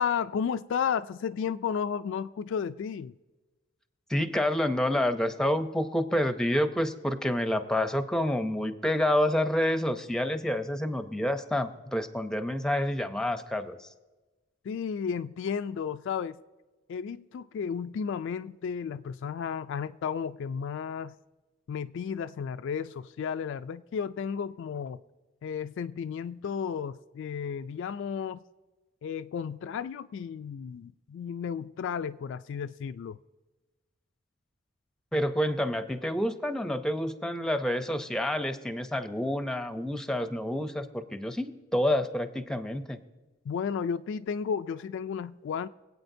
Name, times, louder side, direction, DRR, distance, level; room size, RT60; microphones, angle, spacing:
voice 1, 0.0-3.1 14.6-16.4 16.9-21.1 21.7-25.0 25.4-28.4 29.0-33.2 43.5-45.7, left 7 dB, 65° left, 11 dB, 0.3 m, -33 dB
voice 2, 4.1-13.9 35.1-43.0, left 1 dB, 5° left, 9 dB, 0.6 m, -28 dB
25.0 x 8.5 x 2.7 m, 1.2 s
head